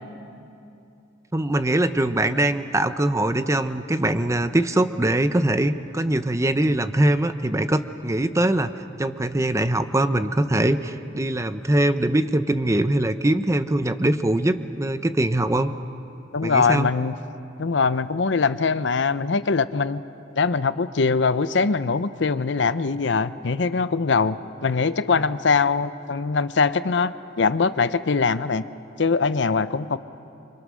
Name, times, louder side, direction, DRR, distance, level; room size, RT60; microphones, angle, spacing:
voice 1, 1.3-8.7 9.0-15.7 16.4-16.9, right 1 dB, 15° right, 11 dB, 0.7 m, -22 dB
voice 2, 16.3-17.1 17.6-20.0 20.4-24.4 24.6-28.6 29.0-30.0, left 4 dB, 70° left, 14 dB, 0.7 m, -22 dB
28.0 x 25.5 x 6.3 m, 2.8 s
head